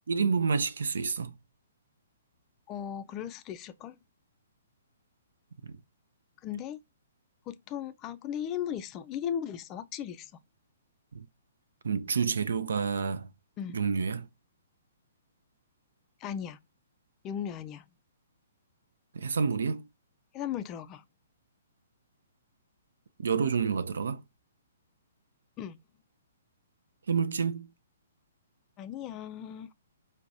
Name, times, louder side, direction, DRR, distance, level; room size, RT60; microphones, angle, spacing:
voice 1, 0.1-1.4 5.6-5.8 11.1-11.3 11.8-13.3 13.7-14.3 19.1-19.9 23.2-24.2 27.1-27.7, right 5 dB, 75° right, 0.4 m, -29 dB
voice 2, 2.7-4.0 6.4-6.8 7.5-10.3 13.6-13.8 16.2-16.6 17.2-17.8 20.3-21.0 25.6-25.8 28.8-29.7, left 9 dB, 30° left, 0.3 m, -37 dB
4.6 x 2.2 x 2.6 m
hypercardioid pair, 125°, 0 cm